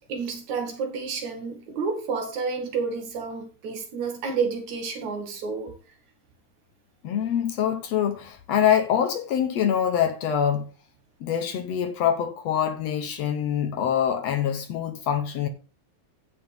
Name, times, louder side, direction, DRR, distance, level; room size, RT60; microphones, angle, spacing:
voice 1, 0.1-5.7, right 5 dB, 65° right, 3.3 m, -30 dB
voice 2, 7.0-10.7 11.2-15.5, left 9 dB, 65° left, 1.8 m, -25 dB
15.0 x 5.7 x 3.5 m
omnidirectional pair, 3.5 m